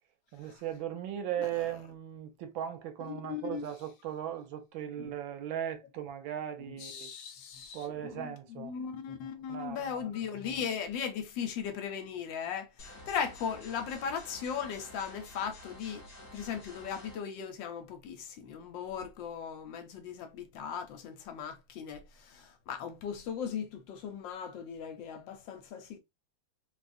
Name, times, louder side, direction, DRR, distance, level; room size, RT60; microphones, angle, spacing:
voice 1, 0.3-7.1 7.7-8.7 9.5-10.1, right 10 dB, 80° right, 1.4 m, -38 dB
voice 2, 3.0-3.7 5.0-5.1 6.7-16.0 16.3-26.0, left 7 dB, 70° left, 1.3 m, -38 dB
sound 1, 12.8-17.2, left 2 dB, 40° left, 0.9 m, -50 dB
3.7 x 2.4 x 2.5 m
omnidirectional pair, 2.2 m